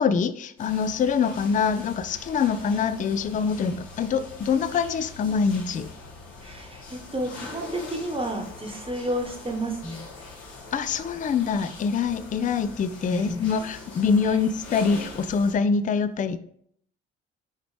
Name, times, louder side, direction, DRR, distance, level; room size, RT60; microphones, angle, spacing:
voice 1, 0.0-5.9 10.7-16.4, left 5 dB, 25° left, 13 dB, 0.4 m, -24 dB
sound 1, 0.6-15.5, left 3 dB, 65° left, 1.6 m, -43 dB
voice 2, 6.4-10.1 13.1-13.5 14.3-14.4, right 1 dB, 15° right, 3 dB, 1.2 m, -31 dB
6.3 x 5.0 x 3.3 m, 0.64 s
figure-of-eight pair, 40°, 33 cm